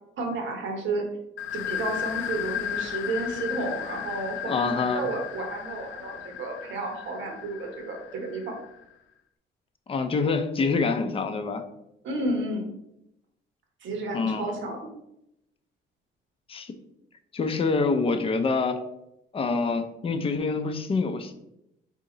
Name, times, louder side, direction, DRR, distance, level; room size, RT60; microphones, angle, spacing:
voice 1, 0.2-1.1 1.5-8.4 12.0-12.7 13.8-14.9, right 2 dB, 70° right, 2 dB, 1.1 m, -32 dB
sound 1, 1.4-8.8, left 10 dB, 85° left, 0.4 m, -35 dB
voice 2, 4.5-5.1 9.9-11.6 14.1-14.5 16.5-16.7 17.3-18.8 19.3-21.3, left 4 dB, 30° left, 7 dB, 0.5 m, -26 dB
3.9 x 2.8 x 3.8 m, 0.82 s
cardioid pair, 90°, 20 cm